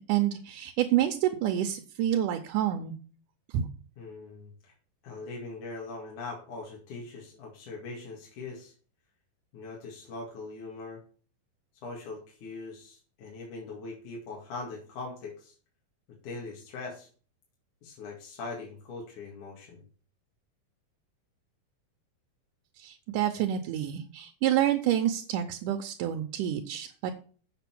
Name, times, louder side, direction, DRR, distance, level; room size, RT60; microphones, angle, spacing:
voice 1, 0.1-2.9 3.5-3.7 22.8-27.1, right 11 dB, 80° right, 6 dB, 2.3 m, -28 dB
voice 2, 4.0-4.7 5.0-8.7 9.5-11.0 11.8-15.5 16.2-17.1 17.8-19.8, left 3 dB, 65° left, -2 dB, 3.5 m, -41 dB
7.8 x 7.0 x 6.0 m, 0.41 s
omnidirectional pair, 3.8 m